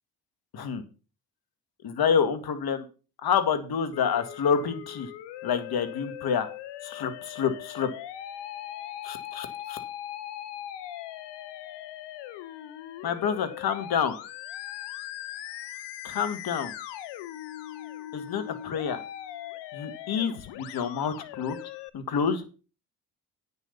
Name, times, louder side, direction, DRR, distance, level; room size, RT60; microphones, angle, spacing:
voice 1, 1.8-2.9 3.2-5.1 5.4-6.5 6.8-7.9 9.0-9.8 13.0-14.2 16.0-16.7 18.1-19.0 19.7-21.6 21.9-22.4, left 7 dB, 55° left, 9 dB, 1.9 m, -28 dB
Musical instrument, 3.9-21.9, left 12 dB, 70° left, 1.0 m, -40 dB
9.1 x 6.9 x 5.6 m, 0.34 s
hypercardioid pair, 45°, 43 cm